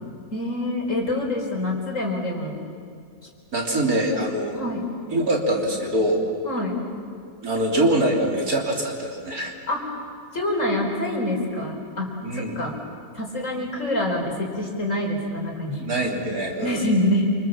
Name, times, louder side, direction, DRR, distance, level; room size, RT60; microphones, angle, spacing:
voice 1, 0.3-2.6 4.0-4.8 6.4-6.9 9.7-9.9 10.3-12.8 13.1-15.8 16.6-17.4, left 1 dB, 55° left, 0 dB, 4.7 m, -26 dB
voice 2, 3.5-4.6 5.1-6.2 7.4-9.5 12.2-12.6 15.8-16.9, right 1 dB, 75° right, 0 dB, 3.8 m, -24 dB
28.5 x 25.5 x 7.4 m, 2.4 s
omnidirectional pair, 1.6 m